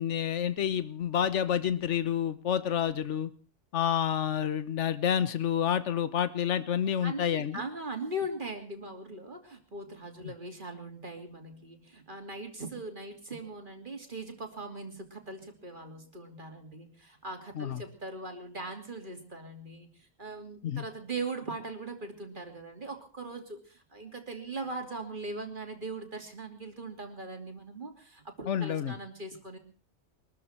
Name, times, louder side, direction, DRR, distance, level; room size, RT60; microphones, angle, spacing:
voice 1, 0.0-3.3 3.7-7.6 17.6-17.8 20.6-20.8 28.5-28.9, left 9 dB, 75° left, 13 dB, 1.3 m, -29 dB
voice 2, 7.0-29.6, right 2 dB, 40° right, 4 dB, 3.0 m, -40 dB
23.5 x 13.5 x 4.4 m, 0.39 s
omnidirectional pair, 1.3 m